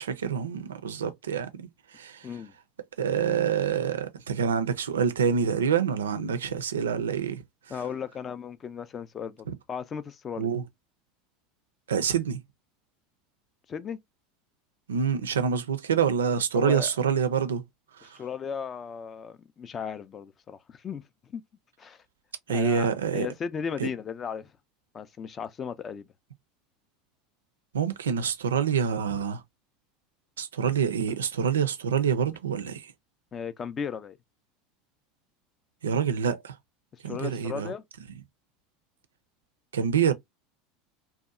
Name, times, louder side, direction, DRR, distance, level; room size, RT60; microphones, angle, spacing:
voice 1, 0.0-2.3 3.0-7.4 10.4-10.6 11.9-12.4 14.9-17.6 18.0-18.2 22.5-23.3 23.8-23.9 27.7-29.4 30.4-32.9 35.8-36.5 37.0-37.7 39.7-40.1, right 7 dB, 75° right, 0.4 m, -26 dB
voice 2, 7.7-10.5 13.7-14.0 16.5-16.9 18.0-21.4 21.8-22.0 22.5-24.5 24.9-26.1 31.1-31.2 33.3-34.2 37.0-37.8, left 7 dB, 30° left, 0.3 m, -36 dB
2.7 x 2.2 x 2.3 m
figure-of-eight pair, 75°, 0 cm